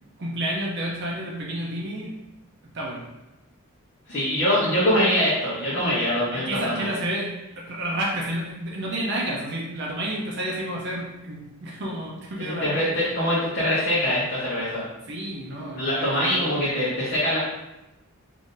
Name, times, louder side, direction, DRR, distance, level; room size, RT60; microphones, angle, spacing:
voice 1, 0.2-2.1 2.7-3.1 6.3-7.3 7.6-12.8 15.1-16.4, right 1 dB, 50° right, -3 dB, 0.5 m, -30 dB
voice 2, 4.1-6.9 12.4-14.8 15.7-17.4, left 1 dB, 45° left, -9 dB, 0.8 m, -23 dB
2.6 x 2.5 x 3.6 m, 0.95 s
head